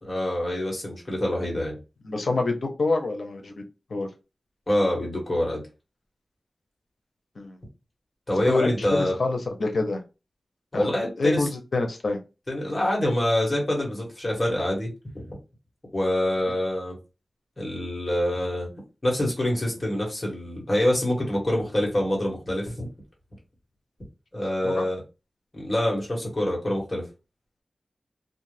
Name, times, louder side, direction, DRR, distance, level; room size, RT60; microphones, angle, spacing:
voice 1, 0.1-1.8 4.7-5.6 8.3-9.2 10.7-11.5 12.5-14.9 15.1-15.3 15.9-17.0 17.6-18.7 19.0-22.9 24.3-25.0 25.5-27.0, left 1 dB, 30° left, -2 dB, 1.3 m, -25 dB
voice 2, 2.0-3.5 3.9-4.1 7.4-7.5 8.5-10.0 10.7-10.9 11.2-12.2 24.6-24.9, left 3 dB, 80° left, 4 dB, 0.6 m, -26 dB
2.5 x 2.3 x 3.2 m, 0.29 s
wide cardioid pair, 100°, 0 cm